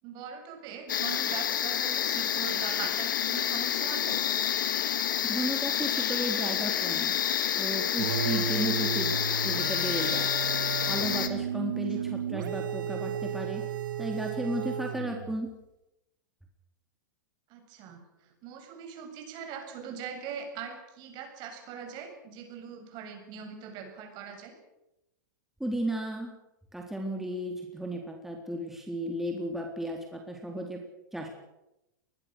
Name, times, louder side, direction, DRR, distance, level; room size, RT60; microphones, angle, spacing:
voice 1, 0.0-4.2 11.9-12.0 17.5-24.5, right 7 dB, 45° right, 5 dB, 7.5 m, -41 dB
sound 1, 0.9-11.3, left 9 dB, 80° left, 2.7 m, -29 dB
voice 2, 5.2-7.2 7.5-9.2 9.4-10.3 10.8-13.6 14.0-15.5 25.6-26.3 26.7-30.8 31.1-31.3, right 1 dB, 5° right, 1 dB, 3.7 m, -34 dB
sound 2, 8.0-15.4, right 8 dB, 80° right, 1.9 m, -33 dB
25.0 x 21.0 x 6.6 m, 0.92 s
hypercardioid pair, 125°, 10 cm